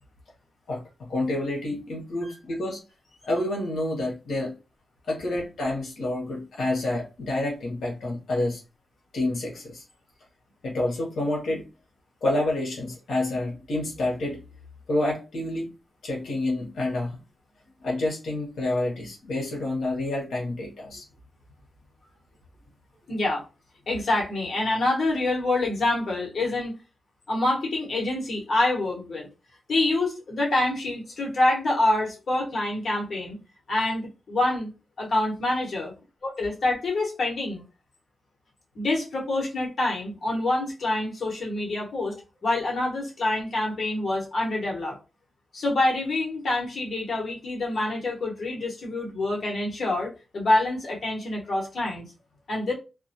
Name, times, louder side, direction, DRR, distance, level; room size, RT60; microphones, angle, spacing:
voice 1, 0.7-2.8 3.3-4.5 5.1-8.6 9.1-9.8 10.6-11.7 12.2-14.4 14.9-15.7 16.0-17.2 17.8-21.0, left 1 dB, 80° left, 0.8 m, -28 dB
voice 2, 23.1-23.4 23.9-26.7 27.3-29.3 29.7-33.4 33.7-34.7 35.0-35.9 36.4-37.6 38.7-42.1 42.4-44.9 45.5-52.1 52.5-52.7, left 2 dB, 55° left, 1.0 m, -26 dB
2.1 x 2.1 x 2.7 m
wide cardioid pair, 135°, 0 cm